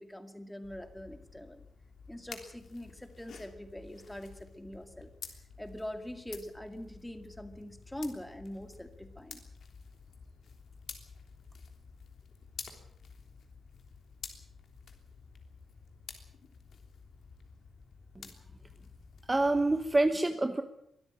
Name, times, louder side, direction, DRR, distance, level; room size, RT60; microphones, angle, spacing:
voice 1, 0.0-1.6 2.1-5.1 5.6-9.4, left 1 dB, 5° left, 8 dB, 2.2 m, -43 dB
sound 1, 0.6-20.1, left 5 dB, 60° left, 3.3 m, -51 dB
voice 2, 19.3-20.6, right 2 dB, 15° right, 8 dB, 1.1 m, -27 dB
23.0 x 13.5 x 8.8 m, 0.76 s
wide cardioid pair, 130°, 0 cm